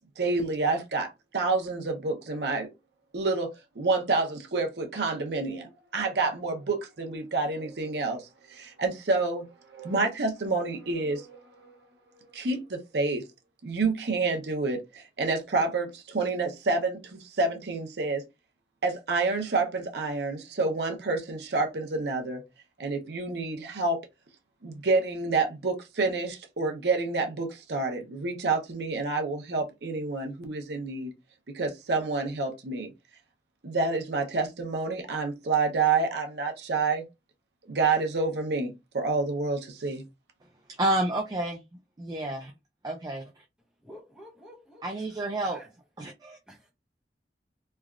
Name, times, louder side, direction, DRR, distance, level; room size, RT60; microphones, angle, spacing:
voice 1, 0.0-2.7 3.1-11.7 12.3-13.2 13.6-18.2 18.8-22.4 22.8-24.0 24.6-31.1 31.5-32.9 33.6-37.0 37.7-40.0, right 3 dB, 75° right, 0.7 m, -28 dB
voice 2, 40.8-41.6 42.0-42.5 42.8-43.2 44.8-45.6 46.0-46.4, right 1 dB, 20° right, 0.3 m, -29 dB
voice 3, 43.8-45.7 46.5-46.7, equal, 5° right, 1.0 m, -50 dB
3.2 x 2.3 x 2.3 m
head